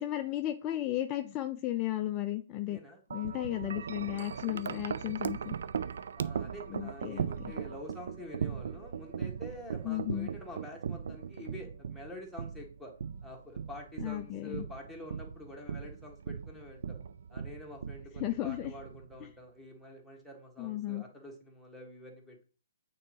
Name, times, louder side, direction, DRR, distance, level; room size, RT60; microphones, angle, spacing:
voice 1, 0.0-2.8 3.1-5.5 6.7-7.5 9.8-10.3 14.0-14.7 18.2-18.7 20.6-21.0, left 14 dB, 25° left, 7 dB, 0.4 m, -34 dB
voice 2, 2.6-5.1 6.2-12.9 13.2-17.0 17.3-22.4, left 1 dB, ahead, 0 dB, 1.5 m, -48 dB
Wind chime, 3.1-19.3, right 7 dB, 60° right, 0.3 m, -39 dB
8.7 x 3.8 x 3.2 m, 0.38 s
figure-of-eight pair, 125°, 0 cm